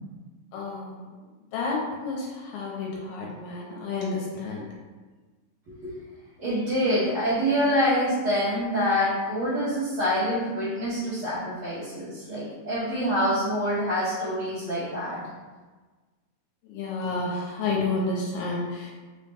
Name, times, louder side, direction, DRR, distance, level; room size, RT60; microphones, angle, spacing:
voice 1, 0.5-1.1 1.5-4.6 16.7-18.9, left 3 dB, 80° left, -3 dB, 2.3 m, -30 dB
voice 2, 6.4-15.2, equal, 70° right, -13 dB, 1.3 m, -26 dB
5.5 x 2.1 x 3.3 m, 1.3 s
omnidirectional pair, 4.0 m